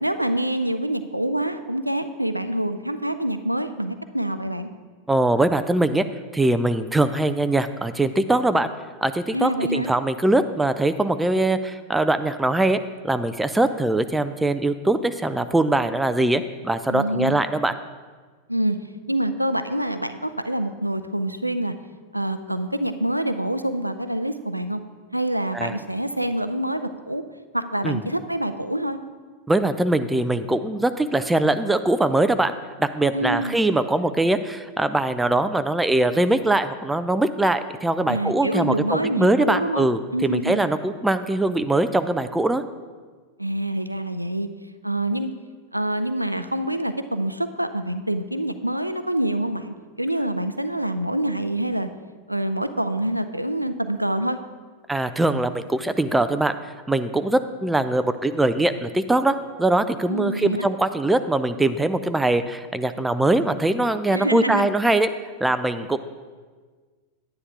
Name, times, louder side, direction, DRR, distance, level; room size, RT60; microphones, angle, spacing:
voice 1, 0.0-4.7 9.3-9.9 16.9-17.4 18.5-18.8 19.1-21.7 22.1-24.8 25.1-27.2 27.5-29.0 33.1-33.6 38.1-40.6 43.4-44.5 44.8-45.3 45.7-51.9 52.3-54.4 60.1-60.7 64.1-64.7, right 1 dB, 90° right, 11 dB, 0.4 m, -26 dB
voice 2, 5.1-6.0 6.3-8.7 9.0-12.8 13.0-17.7 25.5-25.8 27.8-28.0 29.5-32.5 32.8-42.6 54.9-56.5 56.9-65.1 65.4-66.0, right 2 dB, 5° right, 10 dB, 0.4 m, -22 dB
10.5 x 9.6 x 3.5 m, 1.5 s
figure-of-eight pair, 90°, 0 cm